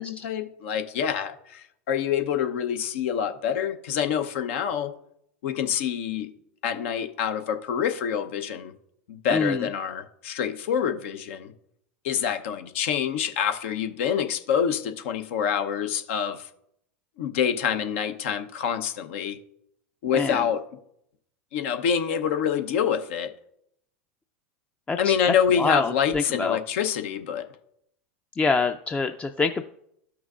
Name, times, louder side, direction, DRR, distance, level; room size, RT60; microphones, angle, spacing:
voice 1, 0.0-4.9 5.4-6.3 6.6-8.7 9.1-11.5 12.0-16.5 17.2-19.4 20.0-20.6 21.5-23.3 25.0-27.5, left 8 dB, 70° left, 0.7 m, -26 dB
voice 2, 9.3-9.7 20.1-20.4 24.9-26.6 28.3-29.6, left 4 dB, 15° left, 0.4 m, -26 dB
13.0 x 6.1 x 2.4 m
hypercardioid pair, 95°, 7 cm